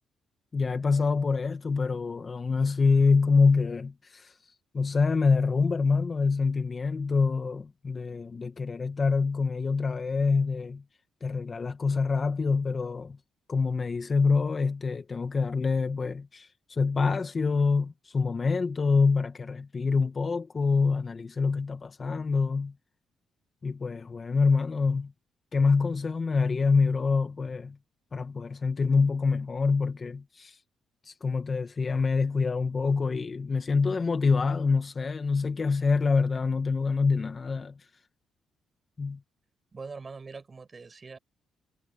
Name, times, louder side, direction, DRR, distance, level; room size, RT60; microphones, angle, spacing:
voice 1, 0.5-4.3 4.7-10.8 11.2-13.2 13.5-22.7 23.6-25.1 25.5-27.8 28.1-30.5 31.0-37.7 39.0-39.2, left 4 dB, 35° left, 1.5 m, -26 dB
voice 2, 39.7-41.2, right 4 dB, 30° right, 6.6 m, -42 dB
cardioid pair, 90°, 0 cm